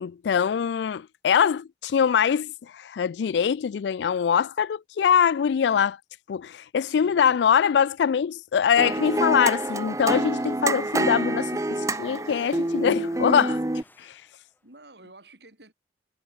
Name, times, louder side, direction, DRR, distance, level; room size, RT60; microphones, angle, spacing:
voice 1, 0.0-6.0 6.3-13.6 14.0-14.2, left 7 dB, 75° left, 0.3 m, -23 dB
voice 2, 6.9-7.4 14.6-15.7, right 2 dB, 70° right, 7.7 m, -50 dB
sound 1, 8.0-8.7 8.9-13.4 13.7-14.8, left 2 dB, 10° left, 7.1 m, -63 dB
sound 2, 8.8-13.8, right 2 dB, 20° right, 0.7 m, -27 dB
head